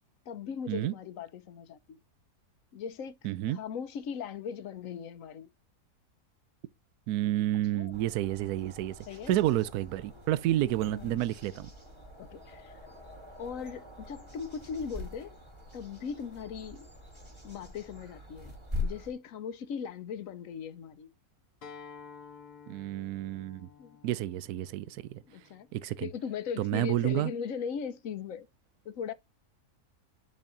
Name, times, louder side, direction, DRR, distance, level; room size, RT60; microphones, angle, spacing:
voice 1, 0.3-2.0 2.7-3.2 3.5-5.5 7.7-8.0 9.1-9.3 10.9-11.2 12.2-12.8 13.4-15.4 15.7-16.9 17.4-18.5 18.8-21.1 23.8-24.0 25.3-25.7 26.0-28.5 28.8-29.1, left 7 dB, 65° left, 1.1 m, -39 dB
voice 2, 3.2-3.6 7.1-11.7 22.7-23.7 24.0-26.1 26.6-27.3, right 14 dB, 80° right, 1.1 m, -30 dB
sound 1, 7.9-19.1, left 3 dB, 20° right, 1.6 m, -43 dB
Acoustic guitar, 21.6-26.8, left 6 dB, 80° left, 1.8 m, -52 dB
9.7 x 4.2 x 2.7 m
omnidirectional pair, 1.6 m